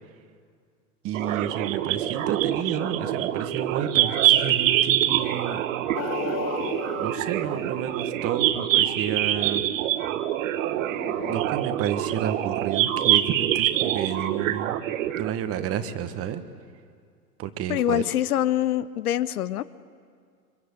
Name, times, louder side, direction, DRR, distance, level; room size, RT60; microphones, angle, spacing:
voice 1, 1.0-5.6 7.0-9.6 11.3-14.8 15.2-16.4 17.4-18.0, right 9 dB, 30° right, 11 dB, 1.4 m, -30 dB
sound 1, 1.1-15.3, right 12 dB, 55° right, 1.2 m, -25 dB
sound 2, 5.9-8.6 10.7-11.4, left 8 dB, 30° left, 1.4 m, -35 dB
voice 2, 17.7-19.6, left 12 dB, 65° left, 17 dB, 0.8 m, -24 dB
24.5 x 23.0 x 8.2 m, 2.1 s
figure-of-eight pair, 100°, 47 cm